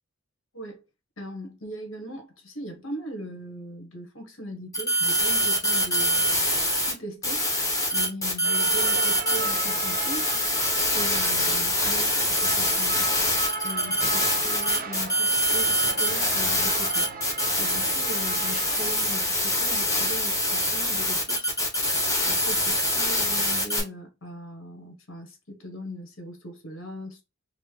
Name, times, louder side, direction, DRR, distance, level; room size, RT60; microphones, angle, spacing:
voice 1, 1.2-7.5 7.9-10.4 10.9-13.1 13.6-17.1 17.6-21.5 22.2-27.2, right 1 dB, 65° left, 1.4 m, -39 dB
sound 1, 4.7-6.9 7.2-23.8, left 1 dB, 15° left, 1.2 m, -24 dB
sound 2, 8.4-18.9, right 4 dB, 45° right, 0.5 m, -36 dB
4.2 x 2.1 x 3.4 m
head